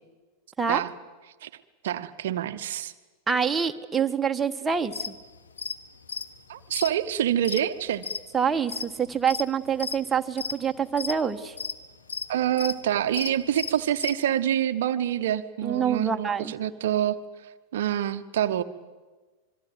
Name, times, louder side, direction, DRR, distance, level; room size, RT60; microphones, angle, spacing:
voice 1, 1.8-2.9 6.5-8.0 12.3-17.2 17.7-18.6, right 11 dB, 55° right, 12 dB, 0.8 m, -26 dB
voice 2, 3.3-5.1 8.3-11.5 15.6-16.5, right 7 dB, 15° right, 6 dB, 1.2 m, -26 dB
sound 1, 4.9-5.1 5.6-5.8 6.0-8.2 8.6-9.4 9.8-10.0 10.4-11.2 11.6-11.8 12.1-12.8 13.1-14.1, left 6 dB, 70° left, 1.4 m, -33 dB
26.0 x 23.0 x 7.8 m, 1.3 s
figure-of-eight pair, 90°, 0 cm